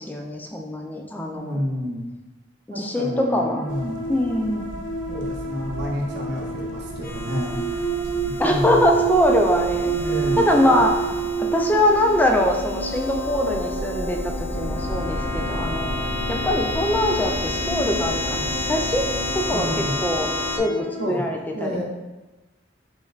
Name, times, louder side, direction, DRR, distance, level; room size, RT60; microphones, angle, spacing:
voice 1, 0.0-1.6 2.7-3.6 4.1-4.8 8.4-9.9 10.4-11.1 11.5-15.9 16.3-19.1 19.3-20.3 20.6-21.8, left 1 dB, 10° left, 2 dB, 0.4 m, -23 dB
voice 2, 1.4-2.0 2.7-4.1 5.1-7.9 8.2-8.9 9.9-10.4 19.5-20.0 21.0-21.2 21.5-21.8, equal, 60° right, -1 dB, 0.8 m, -29 dB
sound 1, 2.9-21.1, right 5 dB, 70° left, 1.0 m, -30 dB
sound 2, 3.7-11.3, right 2 dB, 75° right, 0.4 m, -39 dB
sound 3, 7.0-20.6, left 2 dB, 50° left, 0.7 m, -30 dB
5.3 x 3.2 x 2.4 m, 1.1 s
head